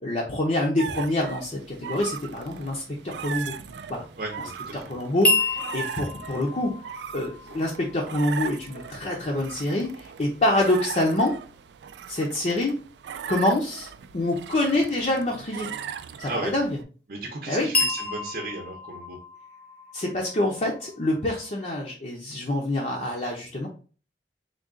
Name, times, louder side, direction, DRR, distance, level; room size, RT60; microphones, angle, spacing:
voice 1, 0.0-3.5 3.9-4.0 4.7-6.7 7.1-11.3 12.1-12.7 13.3-15.7 16.2-16.8 17.5-17.7 19.9-23.7, left 1 dB, 40° left, -1 dB, 0.6 m, -26 dB
sound 1, 0.8-16.8, right 7 dB, 75° right, 0.3 m, -39 dB
voice 2, 4.2-4.8 16.2-16.5 17.1-19.2, right 2 dB, 50° right, 0 dB, 0.7 m, -35 dB
sound 2, 5.2-9.3 17.7-21.5, left 2 dB, 10° left, 0.7 m, -30 dB
3.7 x 2.3 x 3.6 m, 0.38 s
head